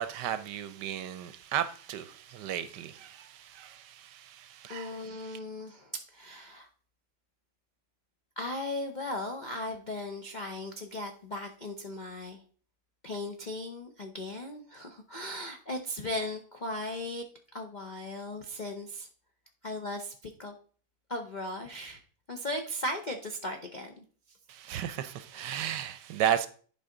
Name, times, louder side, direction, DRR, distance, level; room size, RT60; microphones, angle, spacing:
voice 1, 0.0-5.4 24.5-26.5, right 10 dB, 70° right, 1.2 m, -34 dB
voice 2, 4.7-6.7 8.4-12.4 13.0-17.2 17.5-19.1 19.6-20.5 21.1-22.0 22.3-24.0 24.6-24.8 25.3-25.6, left 1 dB, 60° left, 0.4 m, -37 dB
11.0 x 4.9 x 3.8 m
omnidirectional pair, 2.0 m